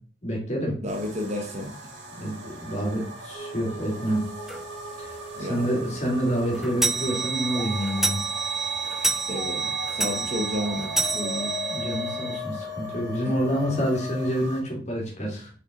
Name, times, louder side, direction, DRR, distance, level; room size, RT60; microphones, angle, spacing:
voice 1, 0.2-0.7 2.1-4.3 5.0-8.2 11.6-15.5, equal, 40° left, -2 dB, 2.7 m, -28 dB
voice 2, 0.8-1.7 5.4-5.7 9.1-11.5 13.2-13.3, left 1 dB, 35° right, 3 dB, 1.3 m, -32 dB
sound 1, 0.9-14.6, right 1 dB, 65° right, 1.7 m, -41 dB
sound 2, 3.3-14.3, left 4 dB, 15° left, 1.3 m, -39 dB
sound 3, 4.5-4.6 5.1-5.2 5.5-5.6 6.0-12.4, right 4 dB, ahead, 0.3 m, -29 dB
5.9 x 5.8 x 3.9 m, 0.43 s
head